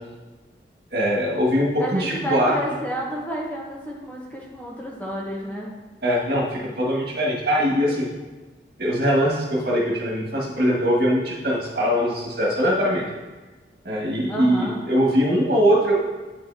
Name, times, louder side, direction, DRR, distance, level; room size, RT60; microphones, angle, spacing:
voice 1, 0.9-2.6 6.0-8.1 8.8-13.0 13.8-15.9, equal, 60° right, -3 dB, 1.7 m, -21 dB
voice 2, 1.8-5.7 14.3-14.8, right 1 dB, 10° left, -4 dB, 0.9 m, -30 dB
9.0 x 5.4 x 2.7 m, 1.3 s
head